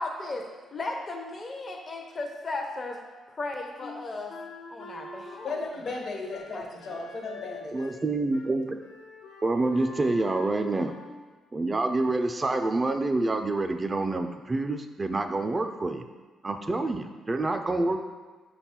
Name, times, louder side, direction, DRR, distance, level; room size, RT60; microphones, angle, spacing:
voice 1, 0.0-0.4 0.7-3.0 3.3-4.3 4.7-5.6 6.5-6.7, left 2 dB, 40° left, 2 dB, 0.5 m, -35 dB
Wind instrument woodwind instrument, 3.8-8.1 8.3-8.5 8.8-11.1, left 3 dB, 90° left, 0.6 m, -44 dB
voice 2, 5.4-8.0, left 3 dB, 65° left, 0 dB, 0.9 m, -36 dB
voice 3, 7.7-8.8 9.4-10.9 11.5-16.0 16.4-18.0, right 2 dB, 25° right, 6 dB, 0.3 m, -27 dB
5.3 x 2.2 x 4.2 m, 1.4 s
cardioid pair, 75°, 0 cm